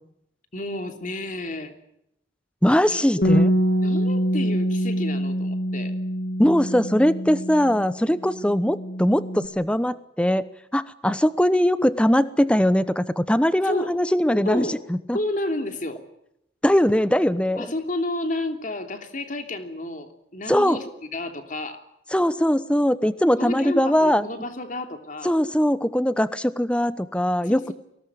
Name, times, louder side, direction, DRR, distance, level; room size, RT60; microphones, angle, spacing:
voice 1, 0.5-1.8 2.9-3.0 3.8-5.9 13.6-14.0 14.4-14.9 15.1-16.0 17.6-20.8 21.1-21.8 23.4-25.4 27.4-27.7, left 1 dB, 45° left, 6 dB, 3.0 m, -31 dB
voice 2, 2.6-3.5 6.4-10.4 10.7-15.2 16.6-17.7 20.5-20.8 22.1-24.3 25.2-27.7, equal, 5° left, 14 dB, 0.9 m, -21 dB
Bass guitar, 3.2-7.9 8.2-9.5, equal, 65° left, 2.9 m, -25 dB
23.0 x 18.5 x 9.6 m, 0.79 s
head